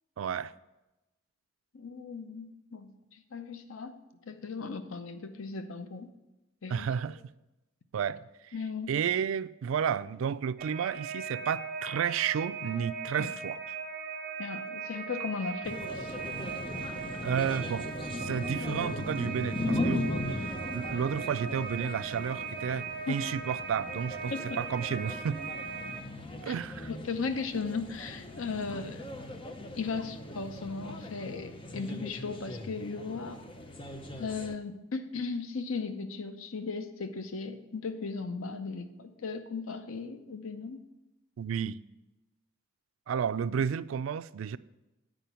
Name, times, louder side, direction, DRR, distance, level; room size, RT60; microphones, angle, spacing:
voice 1, 0.2-0.5 6.7-7.2 7.9-8.5 8.9-13.6 17.2-17.9 18.2-25.4 26.4-26.9 41.4-41.8 43.1-44.6, right 7 dB, 85° right, 0.3 m, -32 dB
voice 2, 1.7-4.0 4.3-6.1 6.6-7.1 8.5-8.9 13.2-13.3 14.4-16.1 23.1-23.2 24.3-24.6 26.5-26.6 26.9-29.1 29.7-33.4 34.2-40.8, left 4 dB, 90° left, 0.7 m, -37 dB
sound 1, 10.6-26.0, right 6 dB, 40° right, 0.7 m, -39 dB
sound 2, 15.6-34.6, left 1 dB, 25° left, 0.6 m, -38 dB
9.2 x 4.9 x 6.9 m
head